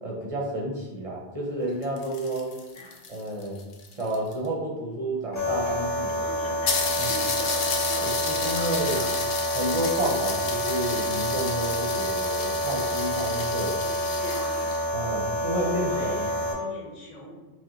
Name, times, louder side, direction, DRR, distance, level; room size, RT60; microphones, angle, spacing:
voice 1, 0.0-2.5 3.1-3.6 4.0-6.3 7.0-7.1 8.0-9.0 9.5-13.7 14.9-16.3, right 1 dB, 40° right, -2 dB, 0.6 m, -30 dB
sound 1, 1.7-4.5 5.3-5.4 5.7-5.8 6.1-6.2 6.7-14.8, left 4 dB, 60° left, 0.7 m, -32 dB
sound 2, 5.4-16.5, equal, 20° left, 0.6 m, -28 dB
voice 2, 6.2-9.1 13.8-14.7 15.5-17.3, equal, 40° left, -3 dB, 1.0 m, -40 dB
3.0 x 2.9 x 3.7 m, 1.2 s
omnidirectional pair, 1.1 m